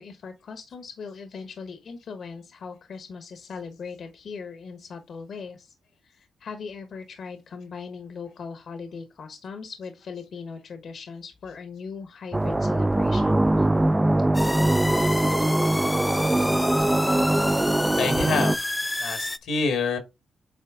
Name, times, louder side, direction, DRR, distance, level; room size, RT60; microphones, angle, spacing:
voice 1, 0.0-5.7 6.0-13.7, left 5 dB, 65° left, 1.1 m, -39 dB
sound 1, 12.3-18.5, right 1 dB, 15° right, 0.4 m, -22 dB
sound 2, 14.3-19.4, left 2 dB, 15° left, 0.7 m, -30 dB
voice 2, 18.0-18.7 19.0-20.0, left 4 dB, 90° left, 1.7 m, -26 dB
8.1 x 4.1 x 3.7 m
cardioid pair, 70°, 0 cm